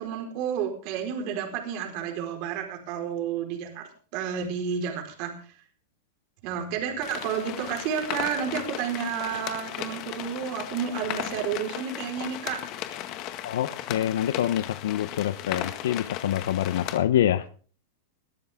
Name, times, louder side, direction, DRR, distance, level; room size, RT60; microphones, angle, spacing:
voice 1, 0.0-5.3 6.4-12.6, right 7 dB, 45° right, 4 dB, 4.6 m, -31 dB
sound 1, 7.0-17.0, left 12 dB, 40° left, 1.9 m, -36 dB
voice 2, 13.4-17.4, left 11 dB, 80° left, 13 dB, 0.9 m, -26 dB
20.5 x 13.0 x 3.7 m, 0.41 s
supercardioid pair, 150°, 0 cm